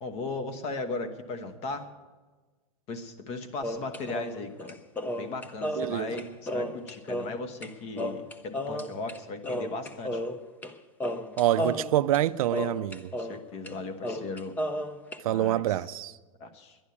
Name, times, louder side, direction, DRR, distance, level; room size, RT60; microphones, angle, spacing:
voice 1, 0.0-1.9 2.9-4.8 5.1-10.2 13.1-14.5 15.3-15.8 16.4-16.8, left 3 dB, 35° left, 1.2 m, -37 dB
sound 1, 3.6-7.7 8.0-9.2 9.4-10.7 11.0-13.4 13.7-13.8 14.0-15.2, equal, 10° left, 0.5 m, -33 dB
voice 2, 5.8-6.1 11.4-13.0 15.2-16.1, right 13 dB, 75° right, 0.5 m, -26 dB
11.0 x 11.0 x 8.5 m
supercardioid pair, 155°, 18 cm